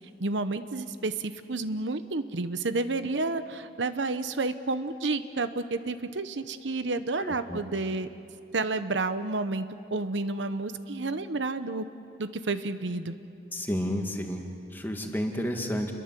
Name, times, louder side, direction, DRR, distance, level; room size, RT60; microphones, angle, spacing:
voice 1, 0.2-8.1 8.5-9.7 9.9-11.8 12.2-13.1, right 3 dB, 80° right, 11 dB, 0.9 m, -30 dB
voice 2, 7.2-7.6 13.5-15.9, equal, 10° left, 3 dB, 2.0 m, -31 dB
29.5 x 22.5 x 7.6 m, 2.6 s
head